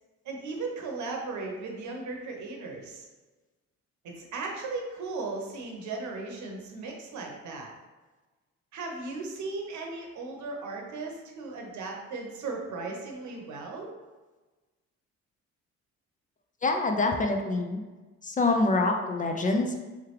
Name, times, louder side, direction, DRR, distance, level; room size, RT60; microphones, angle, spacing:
voice 1, 0.2-3.1 4.0-7.7 8.7-13.9, right 3 dB, 70° right, 1 dB, 0.9 m, -36 dB
voice 2, 16.6-17.8 18.2-19.8, left 2 dB, 25° left, 3 dB, 0.4 m, -25 dB
3.4 x 3.1 x 3.2 m, 1.2 s
cardioid pair, 90°, 30 cm